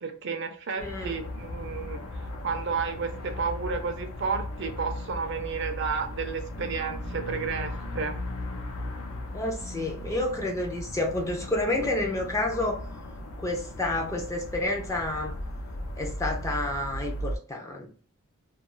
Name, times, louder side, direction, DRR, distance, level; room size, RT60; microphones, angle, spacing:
voice 1, 0.0-8.2, right 5 dB, 50° right, 5 dB, 0.4 m, -32 dB
sound 1, 0.8-17.4, left 1 dB, 75° left, 0.5 m, -37 dB
voice 2, 0.8-1.2 9.3-12.8 13.4-15.4 16.0-18.0, left 2 dB, 15° left, 1 dB, 0.4 m, -29 dB
2.3 x 2.3 x 3.0 m, 0.43 s
head